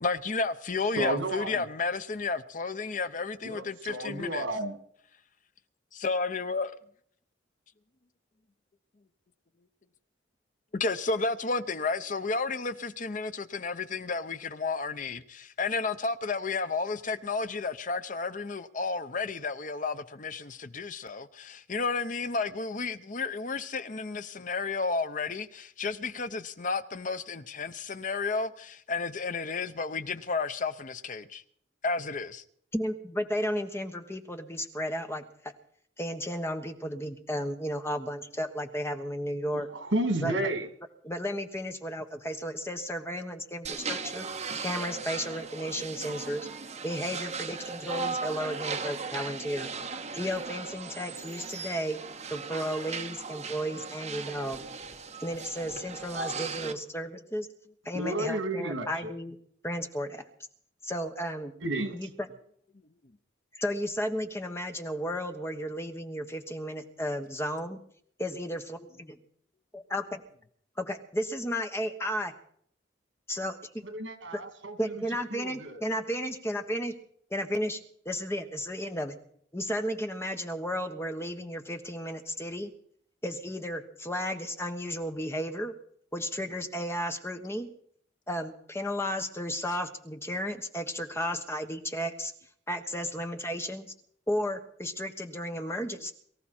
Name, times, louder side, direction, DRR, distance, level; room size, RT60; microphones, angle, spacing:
voice 1, 0.0-4.4 6.0-6.7 10.7-31.4 31.8-32.4, left 4 dB, 45° left, 0.8 m, -32 dB
voice 2, 1.0-1.6 3.4-4.8 39.5-40.6 57.9-59.1 61.6-61.9 73.9-74.8 75.3-75.9, right 1 dB, 80° right, 2.7 m, -32 dB
voice 3, 32.7-35.5 36.0-39.7 40.2-40.3 41.0-44.3 44.6-46.5 46.8-49.7 50.1-52.0 52.3-54.6 55.2-57.5 57.8-59.4 59.6-60.2 60.8-61.5 61.9-62.1 63.6-67.8 68.2-69.2 69.7-70.2 70.8-72.3 73.3-73.8 74.3-74.4 74.8-76.9 77.3-77.8 78.0-79.2 79.5-82.7 83.2-85.7 86.1-87.7 88.3-92.3 92.7-93.9 94.3-96.1, equal, 15° left, 1.3 m, -33 dB
sound 1, 43.6-56.7, right 4 dB, 35° right, 1.4 m, -37 dB
23.5 x 14.0 x 4.4 m
head